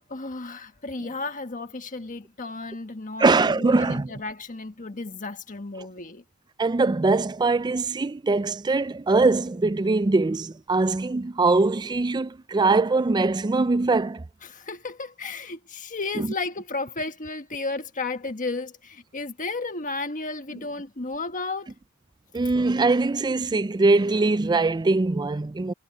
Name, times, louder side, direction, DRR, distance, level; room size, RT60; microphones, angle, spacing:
voice 1, 0.1-6.2 14.4-21.7, left 3 dB, 35° left, 1.5 m, -33 dB
voice 2, 3.2-4.1 6.6-14.2 16.2-16.3 22.3-25.7, right 3 dB, 20° right, 0.4 m, -22 dB
head